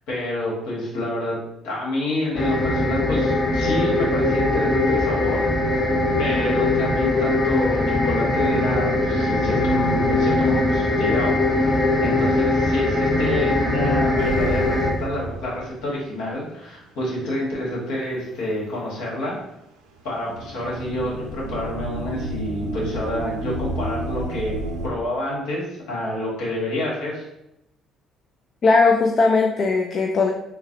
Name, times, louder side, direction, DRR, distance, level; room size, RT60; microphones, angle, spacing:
voice 1, 0.1-1.4 1.6-5.4 6.2-19.4 20.0-27.2, left 1 dB, 75° left, -4 dB, 1.2 m, -28 dB
sound 1, 2.4-14.9, left 2 dB, 25° left, 0.7 m, -21 dB
sound 2, 14.2-16.1 16.4-16.5 17.5-17.7 19.8-24.9, right 2 dB, 85° right, 0.4 m, -31 dB
voice 2, 28.6-30.3, left 3 dB, 50° left, 2 dB, 0.3 m, -18 dB
3.8 x 2.0 x 2.7 m, 0.85 s
hypercardioid pair, 55°, 0 cm